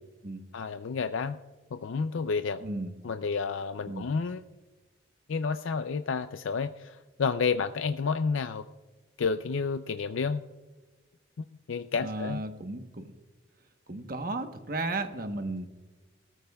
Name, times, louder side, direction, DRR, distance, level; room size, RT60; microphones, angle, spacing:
voice 1, 0.5-1.4 1.7-2.6 3.0-4.4 5.3-8.6 9.2-10.4 11.4-12.4, left 5 dB, 80° left, 9 dB, 0.5 m, -30 dB
voice 2, 2.6-2.9 3.9-4.1 12.0-13.2 13.9-15.7, right 2 dB, 45° right, 7 dB, 1.1 m, -34 dB
18.5 x 14.0 x 2.3 m, 1.3 s
head